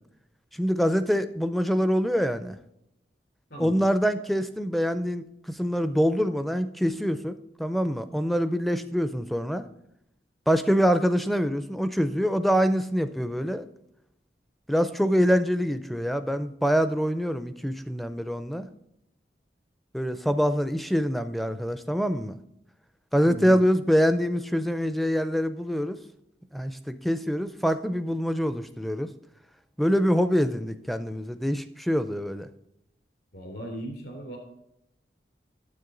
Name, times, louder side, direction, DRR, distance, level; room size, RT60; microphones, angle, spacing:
voice 1, 0.5-2.6 3.6-9.7 10.5-13.6 14.7-18.7 19.9-22.4 23.1-26.0 26.5-29.1 29.8-32.5, equal, ahead, 11 dB, 0.4 m, -25 dB
voice 2, 3.5-3.8 23.3-23.6 33.3-34.4, right 1 dB, 65° left, 1 dB, 3.2 m, -37 dB
9.6 x 7.5 x 3.8 m, 0.79 s
head